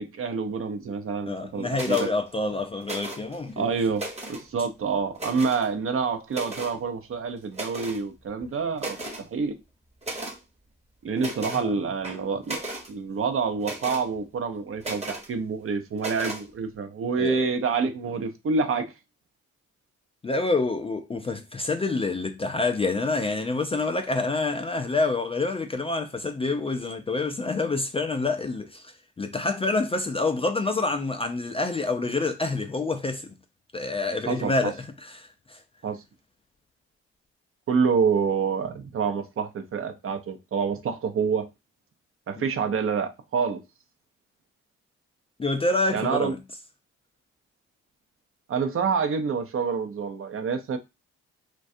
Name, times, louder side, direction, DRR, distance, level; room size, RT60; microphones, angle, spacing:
voice 1, 0.0-2.1 3.6-4.0 4.3-9.6 11.0-12.6 12.9-18.9 34.3-34.7 35.8-36.0 37.7-41.5 42.3-43.6 45.9-46.3 48.5-50.8, right 5 dB, 45° right, 0.6 m, -27 dB
voice 2, 1.3-3.7 11.5-11.7 17.2-17.4 20.2-33.3 33.7-34.8 35.0-35.6 42.4-42.5 45.4-46.4, left 3 dB, 20° left, 0.3 m, -27 dB
sound 1, 1.7-2.1 2.8-3.4 3.8-4.4 5.1-5.7 6.3-6.8 7.5-8.0 8.4-8.5 8.8-9.2 10.0-10.4 11.2-11.6 12.0-12.9 13.6-14.0 14.8-15.3 16.0-16.4, right 1 dB, 20° right, 0.9 m, -35 dB
2.3 x 2.2 x 2.6 m
hypercardioid pair, 45°, 31 cm